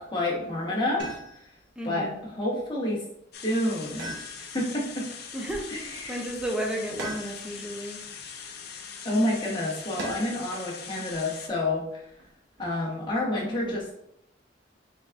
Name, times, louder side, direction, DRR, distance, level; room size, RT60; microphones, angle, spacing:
voice 1, 0.0-1.4 1.8-3.0 3.4-4.1 4.5-5.1 5.7-6.2 9.0-12.1 12.6-13.9, left 1 dB, 25° left, -4 dB, 1.2 m, -29 dB
sound 1, 1.0-1.6 4.0-4.8 7.0-7.7 10.0-10.5 12.2-12.8, right 2 dB, 70° right, 0.9 m, -39 dB
voice 2, 1.8-2.2 5.3-8.0 13.5-13.8, right 1 dB, 5° right, 0 dB, 0.6 m, -33 dB
sound 2, 3.3-11.5, left 6 dB, 60° left, 0.5 m, -42 dB
3.9 x 3.4 x 2.5 m, 0.75 s
head